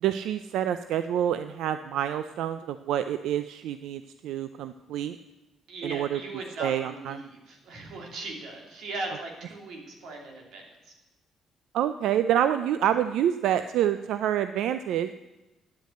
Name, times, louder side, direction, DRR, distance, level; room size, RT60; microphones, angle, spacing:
voice 1, 0.0-5.2 5.8-6.2 6.6-7.2 11.7-15.2, right 10 dB, 80° right, 11 dB, 0.4 m, -27 dB
voice 2, 5.7-10.7, right 2 dB, 65° right, 1 dB, 2.5 m, -38 dB
10.0 x 8.3 x 7.8 m, 1.0 s
cardioid pair, 175°, 0 cm